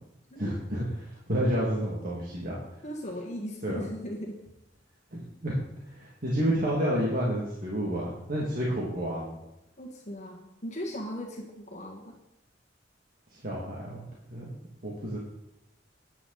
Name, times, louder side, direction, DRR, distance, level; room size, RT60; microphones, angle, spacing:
voice 1, 0.4-2.6 3.6-3.8 5.1-5.6 5.9-9.4 13.4-14.0 14.3-14.5 14.8-15.2, equal, 50° right, -5 dB, 2.4 m, -30 dB
voice 2, 2.8-4.4 9.8-12.1, equal, 40° left, 0 dB, 1.8 m, -38 dB
12.0 x 10.0 x 4.1 m, 0.87 s
head